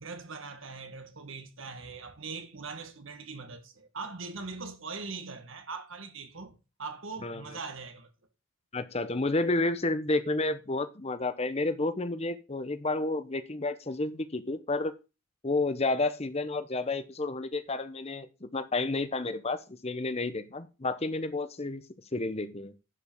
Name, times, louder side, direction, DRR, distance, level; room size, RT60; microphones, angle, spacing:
voice 1, 0.0-8.1, right 4 dB, 60° right, 1.7 m, -41 dB
voice 2, 8.7-14.9 15.4-21.8 22.1-22.7, left 2 dB, 30° left, 0.8 m, -31 dB
11.0 x 5.3 x 5.3 m
head